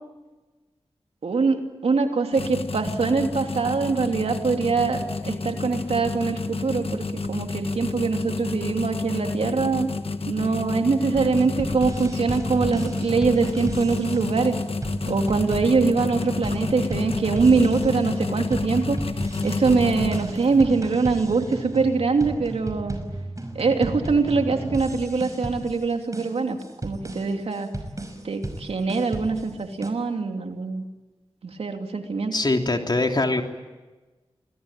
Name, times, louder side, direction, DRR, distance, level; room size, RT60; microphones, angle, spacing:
voice 1, 1.2-9.9 10.3-14.5 15.1-19.0 19.4-23.0 23.5-26.6 26.8-27.7 28.2-30.8 31.4-32.3, right 4 dB, 80° right, 4 dB, 2.9 m, -23 dB
sound 1, 2.3-20.7, left 3 dB, 70° left, 1.3 m, -30 dB
sound 2, 11.1-29.9, right 1 dB, 30° right, 5.8 m, -34 dB
voice 2, 32.3-33.4, left 2 dB, 45° left, 3 dB, 3.4 m, -22 dB
28.5 x 21.0 x 9.0 m, 1.2 s
cardioid pair, 45°, 10 cm